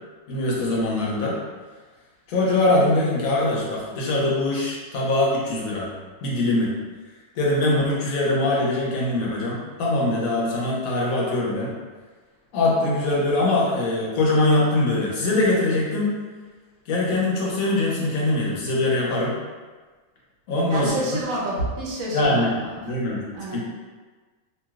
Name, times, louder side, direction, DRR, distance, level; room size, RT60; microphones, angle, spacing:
voice 1, 0.3-1.4 2.3-5.9 6.2-6.7 7.3-11.7 12.5-16.1 16.9-19.4 20.5-21.0 22.1-22.5 22.8-23.3 23.5-23.6, left 2 dB, 85° left, -4 dB, 1.2 m, -22 dB
voice 2, 20.7-22.8 23.3-23.6, right 1 dB, 80° right, -4 dB, 1.1 m, -28 dB
3.1 x 2.7 x 2.3 m, 1.4 s
omnidirectional pair, 1.4 m